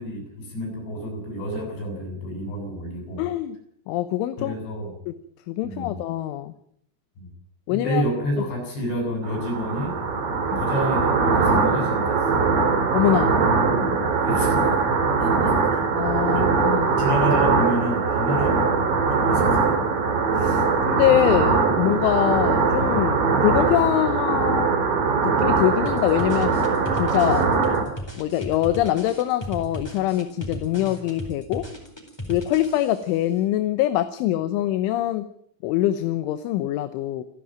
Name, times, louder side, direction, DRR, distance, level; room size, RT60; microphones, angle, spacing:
voice 1, 0.0-3.2 4.4-4.9 5.6-6.0 7.2-7.3 7.7-10.0 10.6-12.4 14.0-14.7 15.2-15.9 16.3-16.5 17.0-19.8, equal, 60° left, 3 dB, 9.9 m, -29 dB
voice 2, 3.2-3.6 3.9-4.5 5.1-5.2 5.5-6.5 7.7-8.0 10.5-10.6 12.9-13.3 15.9-17.0 20.4-24.7 25.2-26.5 26.9-27.5 28.2-31.7 32.3-35.3 35.6-37.2, left 13 dB, 80° left, 11 dB, 3.3 m, -23 dB
sound 1, 9.2-27.8, right 4 dB, 45° right, 4.2 m, -21 dB
sound 2, 25.9-33.2, equal, 5° left, 3.8 m, -36 dB
28.5 x 11.0 x 8.9 m, 0.67 s
omnidirectional pair, 5.7 m